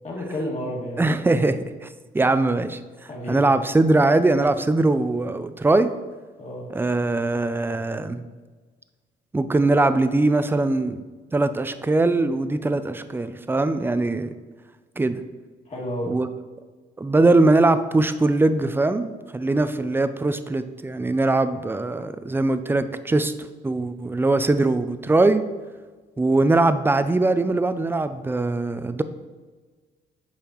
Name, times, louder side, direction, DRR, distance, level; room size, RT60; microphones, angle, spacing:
voice 1, 0.0-1.1 3.1-3.5 6.4-6.7 15.7-16.2, equal, 35° left, -3 dB, 2.2 m, -31 dB
voice 2, 1.0-1.9 2.1-2.8 3.3-5.9 6.7-8.2 9.3-11.0 11.3-14.3 15.0-15.2 16.1-16.3 17.0-23.3 23.6-25.5 26.2-29.0, right 2 dB, 10° right, 11 dB, 0.4 m, -21 dB
8.5 x 5.6 x 3.0 m, 1.4 s
cardioid pair, 90°, 20 cm